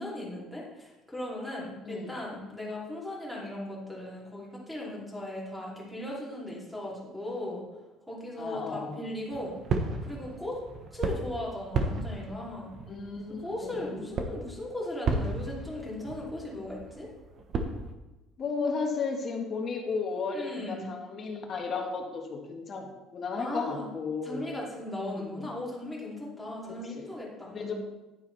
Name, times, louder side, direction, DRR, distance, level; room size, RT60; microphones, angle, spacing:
voice 1, 0.0-7.6 8.1-9.5 10.0-10.6 10.9-12.7 13.4-17.1 20.3-20.9 23.4-23.8 24.2-27.7, left 1 dB, ahead, -5 dB, 2.9 m, -37 dB
voice 2, 1.8-2.2 8.4-9.0 12.9-14.0 18.4-24.5 24.9-25.5 26.6-27.1 27.5-27.7, left 4 dB, 35° left, 2 dB, 1.5 m, -34 dB
sound 1, 9.3-17.9, right 3 dB, 40° right, 1.1 m, -34 dB
10.5 x 9.4 x 3.4 m, 1.1 s
cardioid pair, 155°, 0 cm